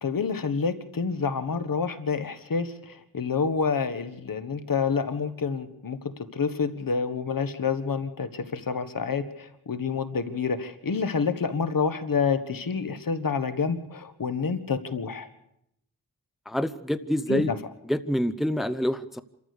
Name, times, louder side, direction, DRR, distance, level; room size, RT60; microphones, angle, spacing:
voice 1, 0.0-6.0 6.3-15.3 17.3-17.5, left 5 dB, 65° left, 11 dB, 1.5 m, -28 dB
voice 2, 16.5-17.5 17.9-19.2, equal, ahead, 13 dB, 0.7 m, -26 dB
28.0 x 14.0 x 6.8 m, 0.79 s
wide cardioid pair, 75°, 36 cm